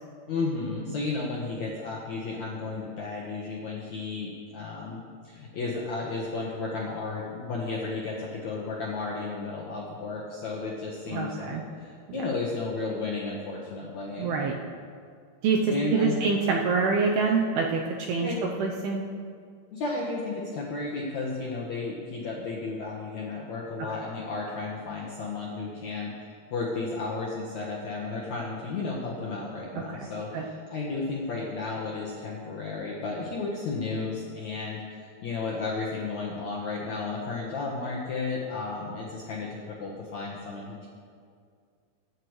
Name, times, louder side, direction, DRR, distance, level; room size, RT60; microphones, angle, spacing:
voice 1, 0.3-14.3 15.7-16.2 18.2-18.4 19.7-40.9, left 3 dB, 70° left, -5 dB, 1.7 m, -33 dB
voice 2, 11.1-11.6 12.1-12.2 14.2-14.5 15.4-18.3 18.6-19.0 30.3-30.4, right 4 dB, 85° right, 0 dB, 2.3 m, -25 dB
23.0 x 8.8 x 3.2 m, 2.2 s
omnidirectional pair, 5.2 m